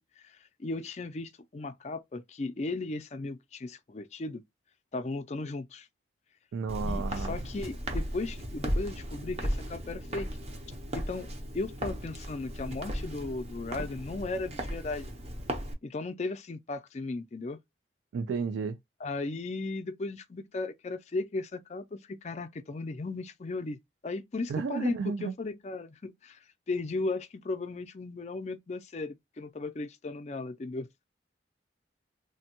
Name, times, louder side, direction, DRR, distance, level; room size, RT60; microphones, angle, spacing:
voice 1, 0.2-4.4 4.9-5.9 6.8-10.3 10.9-11.3 11.5-15.1 15.8-17.6 19.0-26.4 26.7-30.9, left 3 dB, 35° left, 0.4 m, -36 dB
voice 2, 6.5-7.4 18.1-18.8 24.5-25.3, right 5 dB, 85° right, 0.3 m, -32 dB
Walk footsteps, 6.7-15.7, equal, 35° right, 0.6 m, -36 dB
3.3 x 2.2 x 2.8 m
head